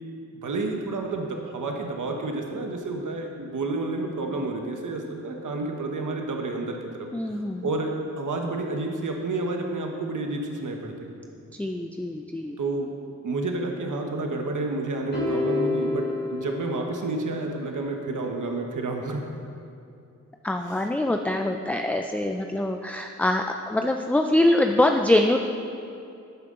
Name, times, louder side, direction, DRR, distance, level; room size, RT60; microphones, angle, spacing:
voice 1, 0.4-7.1 7.6-11.1 12.6-12.9 13.2-19.2, right 2 dB, 90° right, 2 dB, 1.1 m, -30 dB
voice 2, 7.1-7.7 11.5-12.6 20.4-25.4, left 1 dB, 5° left, 4 dB, 0.4 m, -24 dB
sound 1, 15.1-17.5, left 2 dB, 35° left, 2.9 m, -29 dB
11.5 x 9.5 x 3.7 m, 2.5 s
wide cardioid pair, 95°, 30 cm